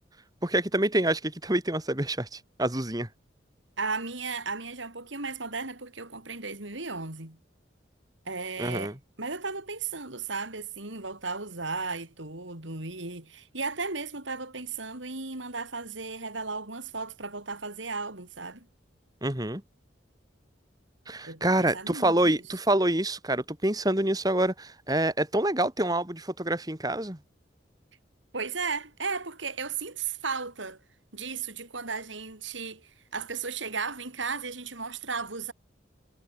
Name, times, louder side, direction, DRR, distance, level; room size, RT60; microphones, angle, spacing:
voice 1, 0.4-3.1 8.6-8.9 19.2-19.6 21.1-27.2, right 1 dB, 20° right, 3.1 m, -27 dB
voice 2, 3.8-7.4 8.3-18.7 21.2-22.4 28.3-30.8 31.1-35.5, right 4 dB, 80° right, 4.5 m, -35 dB
head